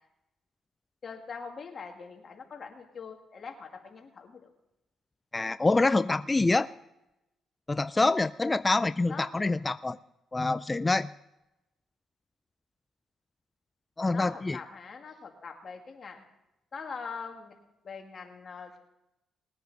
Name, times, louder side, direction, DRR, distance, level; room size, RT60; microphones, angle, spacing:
voice 1, 1.0-4.5 9.1-9.4 14.1-16.2 16.7-17.5 17.8-18.8, left 5 dB, 45° left, 3 dB, 1.9 m, -42 dB
voice 2, 5.3-6.7 7.7-10.0 10.3-11.1 14.0-14.6, left 3 dB, 20° left, 13 dB, 0.3 m, -26 dB
20.0 x 9.3 x 4.0 m, 0.91 s
cardioid pair, 90°, 0 cm